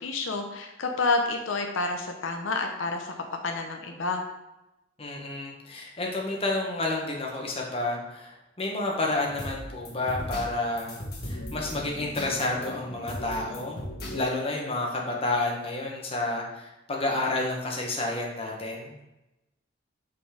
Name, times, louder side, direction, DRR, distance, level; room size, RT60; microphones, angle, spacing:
voice 1, 0.0-3.1 3.4-4.2, left 3 dB, 85° left, 4 dB, 0.7 m, -29 dB
voice 2, 5.0-10.9 11.3-13.8 14.1-19.0, left 2 dB, 30° left, -1 dB, 1.1 m, -30 dB
sound 1, 9.2-14.2, left 1 dB, 50° left, 1.5 m, -37 dB
5.7 x 4.1 x 4.9 m, 0.96 s
head